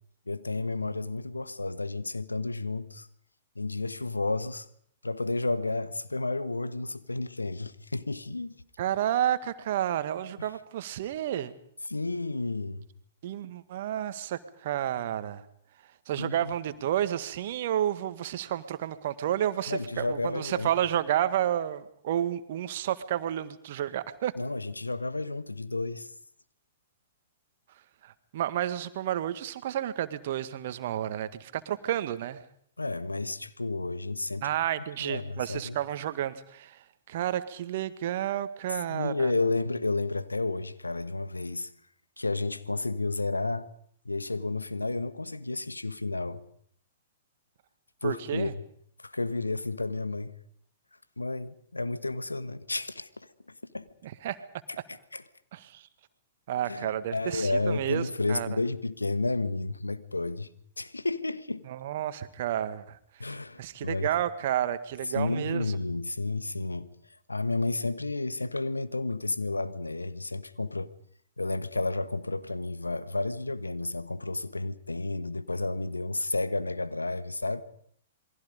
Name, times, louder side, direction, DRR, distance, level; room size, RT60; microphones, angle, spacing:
voice 1, 0.3-3.1 3.5-4.7 5.0-8.5 10.4-10.5 11.9-12.9 16.2-16.3 19.7-20.7 24.4-26.1 32.8-34.5 35.0-35.8 38.9-41.7 42.2-43.7 44.0-46.4 48.0-48.5 49.0-50.3 51.2-53.3 53.7-53.9 54.9-55.2 56.6-60.5 60.8-61.6 63.2-64.1 65.1-66.9 67.3-70.9 71.4-77.6, left 2 dB, 85° left, 1.3 m, -31 dB
voice 2, 8.8-11.5 13.2-15.4 16.0-24.3 28.0-32.4 34.4-39.3 48.0-48.5 54.0-54.4 55.5-55.9 56.5-58.5 61.7-63.0 63.6-65.8, right 11 dB, 50° right, 1.7 m, -31 dB
28.0 x 22.5 x 5.3 m
figure-of-eight pair, 110°, 0 cm